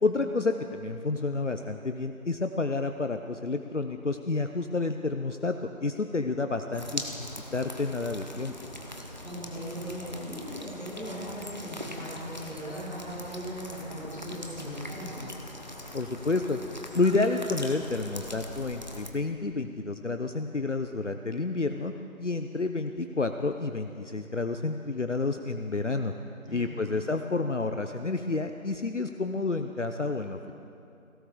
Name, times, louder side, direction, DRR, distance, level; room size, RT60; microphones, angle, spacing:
voice 1, 0.0-5.6 5.8-7.3 7.5-8.5 15.9-16.6 16.9-21.9 22.2-26.1 26.5-30.4, left 3 dB, 60° left, 6 dB, 0.7 m, -29 dB
sound 1, 6.7-19.1, left 1 dB, 35° right, 0.9 m, -41 dB
voice 2, 9.2-15.3 26.4-27.0, equal, 5° left, -19 dB, 4.6 m, -39 dB
22.0 x 17.0 x 3.7 m, 2.6 s
figure-of-eight pair, 170°, 42 cm